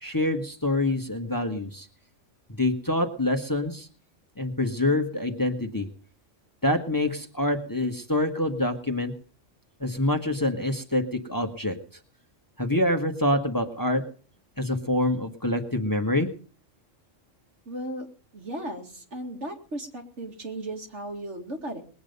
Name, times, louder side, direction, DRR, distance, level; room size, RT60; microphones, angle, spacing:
voice 1, 0.0-1.9 2.6-3.9 4.4-5.9 6.6-9.1 9.8-11.8 12.6-14.0 14.6-16.3, left 1 dB, 15° left, 4 dB, 1.3 m, -26 dB
voice 2, 17.7-18.1 18.3-21.8, right 1 dB, 65° right, 2 dB, 2.5 m, -36 dB
20.5 x 8.7 x 5.3 m, 0.41 s
omnidirectional pair, 1.3 m